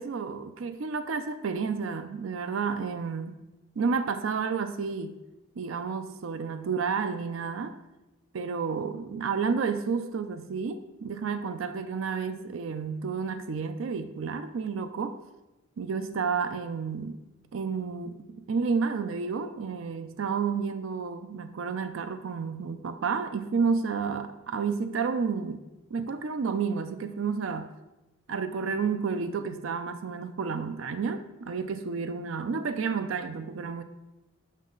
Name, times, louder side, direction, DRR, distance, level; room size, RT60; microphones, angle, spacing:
voice 1, 0.0-3.4 3.8-5.2 5.6-7.8 8.3-15.2 15.8-17.2 17.5-18.2 18.5-25.6 25.9-27.7 28.3-33.8, right 5 dB, 80° right, 10 dB, 0.4 m, -31 dB
7.4 x 6.2 x 3.8 m, 1.0 s
head